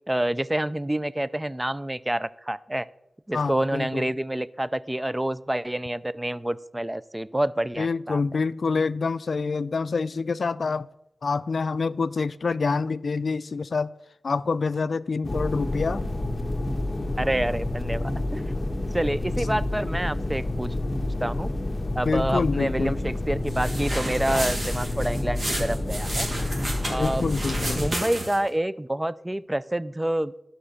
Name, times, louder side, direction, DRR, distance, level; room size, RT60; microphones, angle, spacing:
voice 1, 0.1-2.9 3.3-8.2 17.2-18.5 18.9-20.7 21.2-21.5 21.9-26.3 26.9-27.3 27.8-30.3, right 1 dB, 15° right, 0.4 m, -28 dB
voice 2, 3.3-4.1 7.8-10.9 11.2-13.9 14.2-16.0 19.4-19.6 22.0-23.0 27.0-27.8, left 4 dB, 70° left, 0.3 m, -27 dB
sound 1, 15.2-27.9, left 1 dB, 30° left, 1.4 m, -29 dB
sound 2, 23.5-28.5, right 1 dB, 55° right, 3.0 m, -32 dB
11.0 x 5.7 x 6.5 m
wide cardioid pair, 70°, 0 cm